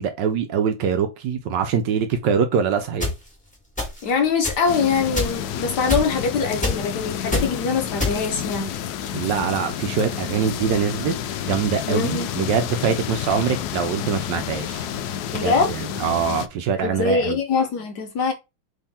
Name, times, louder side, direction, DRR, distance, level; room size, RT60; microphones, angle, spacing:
voice 1, 0.0-3.1 9.1-11.1 11.5-14.9 15.3-17.4, right 7 dB, 70° right, 1.1 m, -23 dB
sound 1, 3.0-3.1 3.8-4.1 4.4-4.6 5.1-5.5 5.9-6.3 6.6-6.9 7.3-7.5 8.0-8.4, left 2 dB, 5° left, 1.6 m, -24 dB
voice 2, 4.0-8.7 11.9-12.3 15.3-15.7 16.8-18.3, left 5 dB, 65° left, 1.1 m, -23 dB
sound 2, 4.7-16.5, left 9 dB, 85° left, 0.8 m, -30 dB
3.7 x 3.3 x 4.2 m
omnidirectional pair, 2.3 m